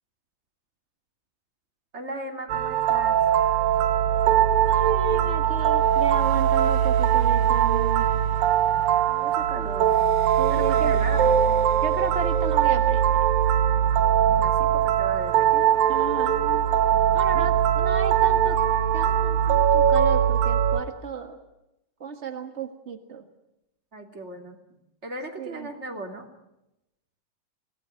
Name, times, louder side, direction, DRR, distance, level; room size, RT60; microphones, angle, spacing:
voice 1, 1.9-3.2 9.1-9.9 10.5-11.7 14.2-15.6 16.7-17.5 23.9-24.6 25.0-26.3, right 2 dB, 20° right, 3 dB, 2.8 m, -37 dB
sound 1, 2.5-20.8, right 9 dB, 90° right, 3.0 m, -21 dB
voice 2, 4.7-8.1 10.4-10.9 11.8-13.3 15.9-16.7 17.1-18.6 18.9-21.4 22.0-23.2 25.4-25.7, right 6 dB, 55° right, 5 dB, 0.7 m, -34 dB
24.5 x 17.5 x 9.6 m, 0.89 s
omnidirectional pair, 3.9 m